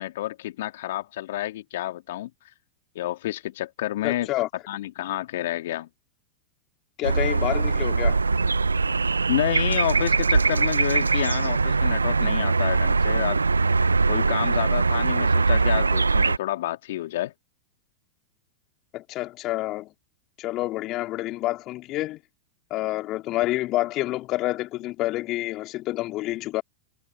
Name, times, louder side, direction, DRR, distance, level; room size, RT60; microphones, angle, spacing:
voice 1, 0.0-2.3 3.0-4.3 4.7-5.9 9.3-13.4 14.1-17.3, left 14 dB, 65° left, 2.3 m, -29 dB
voice 2, 4.0-4.5 7.0-8.2 18.9-19.9 20.4-22.2 22.7-26.6, left 17 dB, 40° left, 3.1 m, -28 dB
sound 1, 7.0-16.4, right 4 dB, 90° right, 1.1 m, -22 dB
hypercardioid pair, 95°, 0 cm